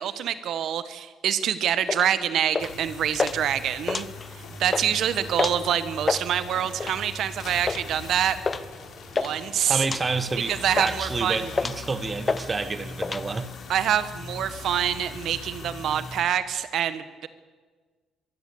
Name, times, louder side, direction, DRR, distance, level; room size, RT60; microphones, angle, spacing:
voice 1, 0.0-8.4 9.1-9.8 10.5-11.4 13.7-17.3, right 9 dB, 65° right, 1.0 m, -26 dB
sound 1, 1.9-2.1 2.5-2.8 3.2-3.4 3.8-4.4 4.7-4.9 5.4-5.6 5.9-6.3 6.8-7.1 7.7-7.9 8.5-8.6 8.9-9.3 9.8-10.0 10.5-11.1 11.5-11.9 12.3-12.5 12.7-13.2, left 4 dB, 25° left, 0.8 m, -28 dB
sound 2, 2.6-16.2, left 3 dB, 50° left, 3.5 m, -41 dB
sound 3, 4.2-12.5, left 3 dB, 90° left, 7.2 m, -50 dB
voice 2, 9.7-13.5, right 4 dB, 25° right, 1.2 m, -29 dB
23.0 x 14.0 x 8.3 m
cardioid pair, 115°, 0 cm